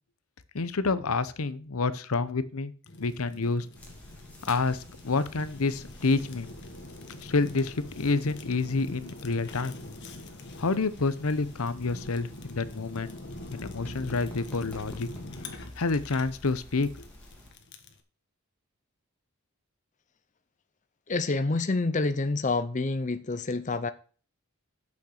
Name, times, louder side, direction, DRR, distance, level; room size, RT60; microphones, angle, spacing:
voice 1, 0.5-2.7 3.0-3.7 4.5-6.5 7.2-9.8 10.6-13.1 13.5-15.1 15.8-16.9, left 3 dB, 75° left, 0.8 m, -28 dB
Fire, 2.9-18.0, left 2 dB, 50° left, 1.4 m, -45 dB
sound 1, 3.7-17.5, left 1 dB, 5° left, 2.7 m, -49 dB
voice 2, 21.1-23.9, left 3 dB, 35° left, 0.6 m, -28 dB
8.7 x 6.4 x 6.5 m
head